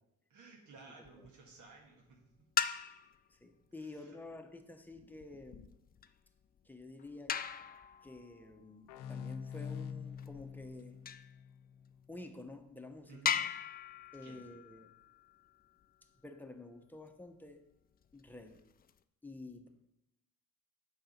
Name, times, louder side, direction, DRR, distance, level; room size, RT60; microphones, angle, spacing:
voice 1, 0.3-2.5 3.8-4.1 13.1-13.4 14.2-14.4, right 4 dB, 80° right, 0 dB, 1.8 m, -57 dB
sound 1, 1.0-1.5 2.4-3.3 4.9-11.4 12.0-12.1 12.6-12.7 13.3-15.9 18.0-19.0, left 8 dB, 30° left, 0.4 m, -40 dB
voice 2, 3.3-5.7 6.6-7.4 8.0-11.0 12.1-13.4 14.1-14.9 16.2-17.6 18.1-18.6 19.2-19.7, left 2 dB, 5° left, 5 dB, 0.8 m, -50 dB
sound 2, 8.9-12.3, left 7 dB, 90° left, 0.6 m, -45 dB
6.6 x 5.0 x 5.8 m, 0.87 s
cardioid pair, 90°, 30 cm